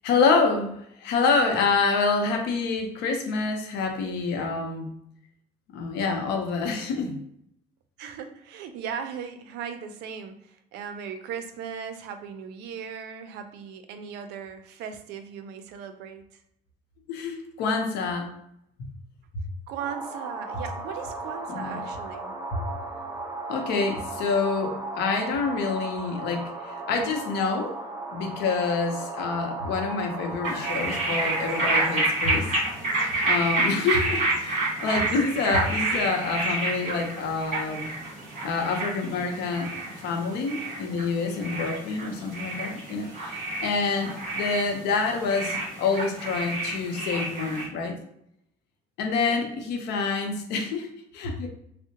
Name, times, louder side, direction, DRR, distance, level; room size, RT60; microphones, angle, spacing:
voice 1, 0.0-4.9 5.7-7.2 17.1-18.3 21.5-21.8 23.5-27.8 28.1-32.5 33.2-37.9 38.4-39.7 40.0-48.0 49.0-50.9 51.1-51.5, left 4 dB, 90° left, 3 dB, 0.7 m, -27 dB
voice 2, 8.0-16.2 19.7-22.4 33.7-33.9 49.3-49.4, right 7 dB, 85° right, 8 dB, 0.4 m, -38 dB
sound 1, 19.8-32.1, right 3 dB, 15° right, 0.6 m, -36 dB
sound 2, 30.4-47.7, right 2 dB, 50° right, 1.4 m, -29 dB
3.5 x 2.1 x 2.8 m, 0.76 s
cardioid pair, 110°, 17 cm